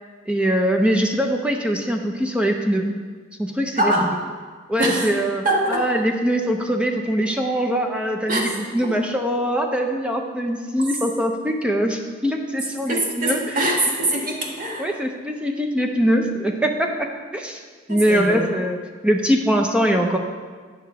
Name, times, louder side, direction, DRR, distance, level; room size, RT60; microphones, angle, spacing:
voice 1, 0.3-2.9 3.4-3.9 4.7-13.6 14.8-17.6 17.9-18.8 19.0-20.2, equal, 5° right, 3 dB, 0.5 m, -22 dB
voice 2, 3.8-4.1 4.8-5.1 5.4-5.9 8.3-8.4 8.8-8.9 12.9-14.9 17.9-18.5, right 1 dB, 45° right, -1 dB, 1.4 m, -23 dB
9.3 x 5.9 x 4.6 m, 1.5 s
head